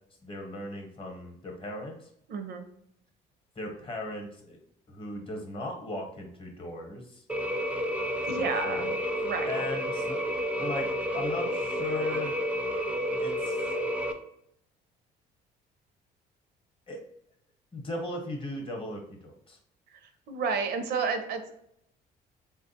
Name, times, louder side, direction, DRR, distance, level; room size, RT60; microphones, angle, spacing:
voice 1, 0.2-2.1 3.6-4.6 4.9-7.2 8.2-8.9 9.5-10.2 10.6-10.9 11.1-12.3 13.2-13.7 16.9-17.0 17.7-19.6, left 1 dB, 30° left, 2 dB, 0.8 m, -37 dB
voice 2, 2.3-2.6 8.3-8.9 9.2-9.6 20.3-21.6, right 5 dB, 70° right, 8 dB, 0.5 m, -31 dB
sound 1, 7.3-14.1, equal, 5° right, 0.3 m, -30 dB
3.3 x 2.3 x 2.7 m, 0.73 s
cardioid pair, 110°, 17 cm